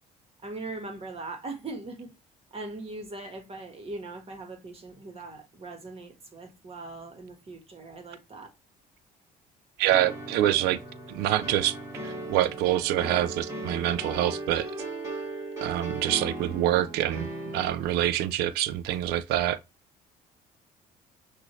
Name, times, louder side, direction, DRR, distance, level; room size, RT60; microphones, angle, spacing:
voice 1, 0.4-2.1 2.5-8.5, right 2 dB, 35° right, 1.6 m, -40 dB
voice 2, 9.8-10.8 11.1-11.8 12.0-14.7 15.6-19.6, right 13 dB, 75° right, 0.4 m, -26 dB
sound 1, 9.9-18.1, right 2 dB, 20° right, 2.8 m, -37 dB
6.0 x 2.6 x 3.1 m
supercardioid pair, 70°, 17 cm